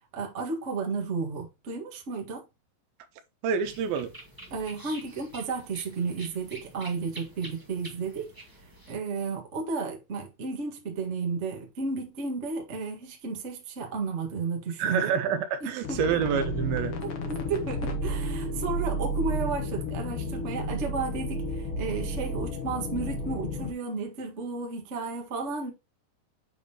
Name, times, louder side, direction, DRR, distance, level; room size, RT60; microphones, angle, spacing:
voice 1, 0.1-2.4 4.5-8.3 8.9-15.1 15.6-16.0 17.0-25.7, right 4 dB, 50° right, 0.8 m, -33 dB
voice 2, 3.4-4.1 14.8-17.0, right 7 dB, 90° right, 2.8 m, -27 dB
sound 1, 3.6-8.9, right 1 dB, 10° right, 1.0 m, -47 dB
sound 2, 15.8-23.7, equal, 55° left, 1.6 m, -32 dB
7.8 x 5.2 x 2.9 m
omnidirectional pair, 4.1 m